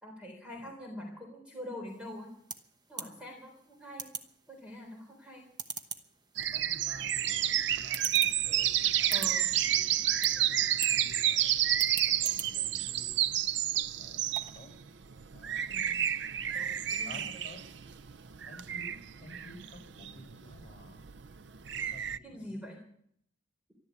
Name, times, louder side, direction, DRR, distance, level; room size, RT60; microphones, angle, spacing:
voice 1, 0.0-2.3 2.9-4.1 4.5-5.5 9.1-9.5 15.7-16.1 16.5-17.4 22.2-22.8, equal, 5° right, 1 dB, 3.6 m, -44 dB
sound 1, 1.9-14.7, right 4 dB, 20° right, 1.1 m, -46 dB
sound 2, 6.4-22.2, right 11 dB, 60° right, 0.5 m, -30 dB
voice 2, 6.5-11.6 12.0-13.3 13.9-14.7 15.3-15.7 17.1-17.6 18.5-21.0 21.7-22.7, left 1 dB, 35° left, 1 dB, 6.8 m, -52 dB
14.0 x 12.5 x 8.1 m, 0.68 s
head